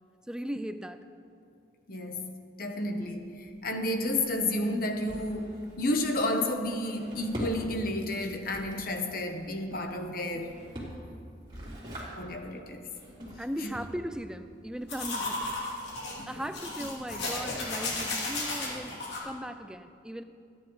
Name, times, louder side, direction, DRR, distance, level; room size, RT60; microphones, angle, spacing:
voice 1, 0.3-1.0 13.4-15.5 16.3-20.2, equal, 5° right, 9 dB, 0.4 m, -38 dB
voice 2, 1.9-2.3 2.6-10.6 12.2-12.9 13.6-13.7, left 1 dB, 50° left, 5 dB, 1.0 m, -31 dB
Drawer open or close, 3.0-18.1, equal, 25° right, 3.0 m, -45 dB
sound 1, 14.9-19.2, left 2 dB, 70° left, 2.9 m, -34 dB
23.5 x 9.8 x 3.1 m, 2.4 s
head